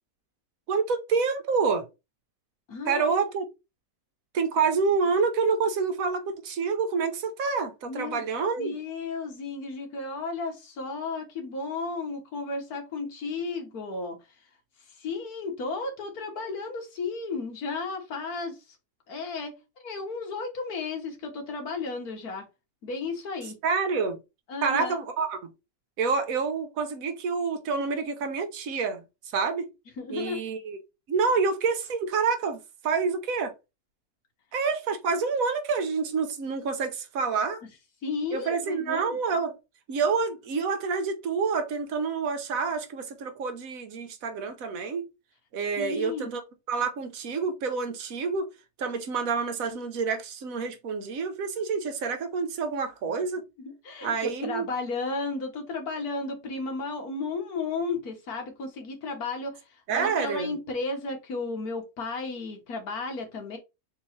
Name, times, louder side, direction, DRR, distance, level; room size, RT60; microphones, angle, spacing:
voice 1, 0.7-1.8 2.9-3.4 4.3-8.7 23.6-24.2 24.6-25.4 26.0-29.0 29.3-29.7 30.1-30.8 31.1-33.5 34.5-37.6 38.3-39.5 39.9-45.0 45.5-46.4 46.7-48.5 48.8-53.4 54.0-54.7 59.9-60.5, right 5 dB, 70° right, 1.2 m, -28 dB
voice 2, 2.7-3.2 7.9-8.2 8.6-14.5 14.8-18.8 19.1-22.5 22.8-23.6 24.5-25.0 30.0-30.4 38.0-39.2 45.8-46.3 53.6-63.6, left 4 dB, 80° left, 1.7 m, -34 dB
3.9 x 2.9 x 4.2 m
omnidirectional pair, 1.6 m